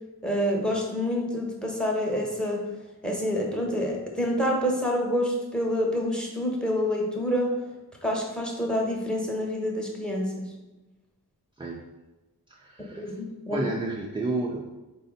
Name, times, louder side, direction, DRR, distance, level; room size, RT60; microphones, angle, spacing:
voice 1, 0.2-2.7 3.0-7.5 8.0-10.5 13.0-13.7, equal, ahead, -1 dB, 0.9 m, -27 dB
voice 2, 12.5-13.2 13.5-14.6, right 2 dB, 15° right, -1 dB, 0.4 m, -31 dB
4.0 x 2.1 x 3.8 m, 1.1 s
cardioid pair, 40°, 39 cm